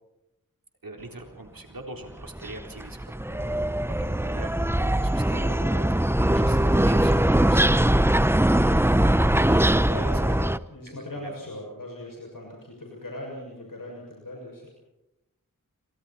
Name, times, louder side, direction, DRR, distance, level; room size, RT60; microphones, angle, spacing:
voice 1, 0.8-5.9 6.3-8.0 9.2-10.5 10.9-11.3, right 2 dB, 85° right, 3 dB, 4.0 m, -42 dB
sound 1, 2.2-10.6, right 1 dB, 5° right, 0.9 m, -21 dB
voice 2, 5.3-5.9 8.5-8.9 9.8-14.7, left 1 dB, 75° left, -1 dB, 7.0 m, -40 dB
28.5 x 25.0 x 4.4 m, 0.90 s
wide cardioid pair, 40°, 34 cm